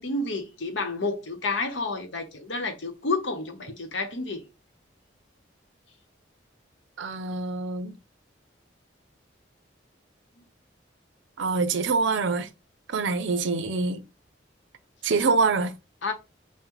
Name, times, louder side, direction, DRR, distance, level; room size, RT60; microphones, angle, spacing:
voice 1, 0.0-4.4 16.0-16.1, left 3 dB, 80° left, 0.9 m, -30 dB
voice 2, 7.0-8.0 11.4-12.5 12.9-14.0 15.0-15.7, right 4 dB, 80° right, 0.5 m, -25 dB
5.6 x 2.1 x 3.0 m
head